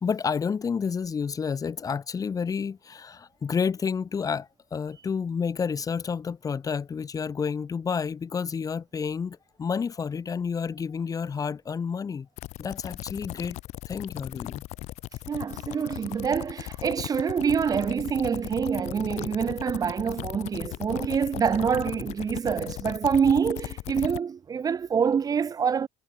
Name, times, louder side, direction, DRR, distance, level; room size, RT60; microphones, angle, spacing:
voice 1, 0.0-12.3 12.6-13.6 13.9-14.6, left 6 dB, 30° left, 2.3 m, -30 dB
sound 1, 12.4-24.2, left 18 dB, 70° left, 1.0 m, -37 dB
voice 2, 15.3-25.9, right 7 dB, 30° right, 1.1 m, -26 dB
cardioid pair, 110°, 12 cm